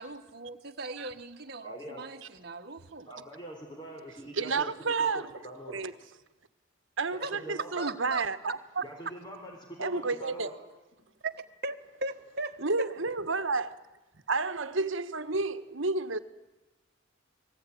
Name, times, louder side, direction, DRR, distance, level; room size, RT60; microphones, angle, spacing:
voice 1, 0.0-3.1 7.2-7.3 7.8-8.3 11.2-11.3 11.6-12.9, right 3 dB, 50° right, 5 dB, 1.5 m, -38 dB
voice 2, 1.6-2.1 3.0-4.7 5.0-5.8 7.1-7.9 8.8-10.5, right 1 dB, 20° left, 1 dB, 4.4 m, -43 dB
voice 3, 4.4-5.3 5.7-5.9 7.0-8.6 9.8-10.5 12.6-13.8 14.3-16.2, right 3 dB, 65° right, 12 dB, 1.4 m, -30 dB
29.5 x 20.0 x 10.0 m, 1.1 s
head